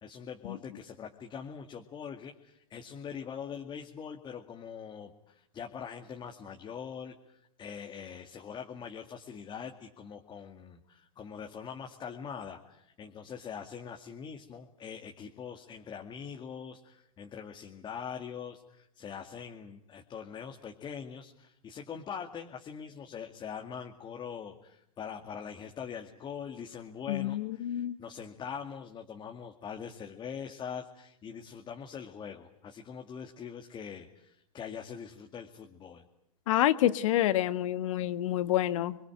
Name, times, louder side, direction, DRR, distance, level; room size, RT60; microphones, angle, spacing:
voice 1, 0.0-36.1, left 7 dB, 25° left, 3 dB, 2.2 m, -43 dB
voice 2, 27.1-28.0 36.5-39.0, left 13 dB, 60° left, 13 dB, 1.6 m, -28 dB
29.0 x 22.0 x 9.0 m, 0.75 s
hypercardioid pair, 105°, 19 cm